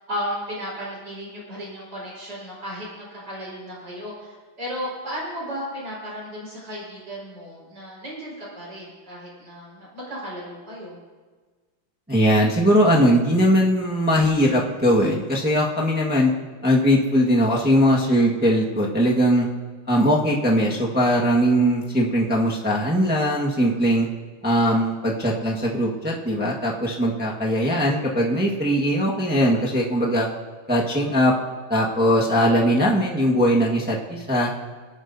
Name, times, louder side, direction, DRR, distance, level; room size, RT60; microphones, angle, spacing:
voice 1, 0.0-11.0 29.5-29.6, equal, 60° right, -5 dB, 5.5 m, -34 dB
voice 2, 12.1-16.3 16.6-19.5 19.9-24.1 24.4-30.3 30.7-31.3 31.7-34.5, equal, 5° right, -3 dB, 1.1 m, -20 dB
23.0 x 11.0 x 2.7 m, 1.4 s
omnidirectional pair, 2.2 m